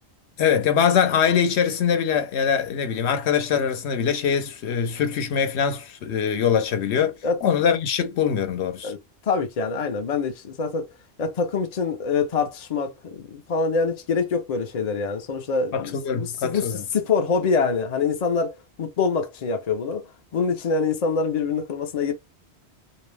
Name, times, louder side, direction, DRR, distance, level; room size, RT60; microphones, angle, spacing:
voice 1, 0.4-7.1 7.4-8.9 15.7-16.8, left 7 dB, 75° left, 0.9 m, -23 dB
voice 2, 9.3-10.9 11.2-20.0 20.3-22.1, left 5 dB, 50° left, 0.5 m, -25 dB
2.5 x 2.0 x 3.2 m
omnidirectional pair, 1.1 m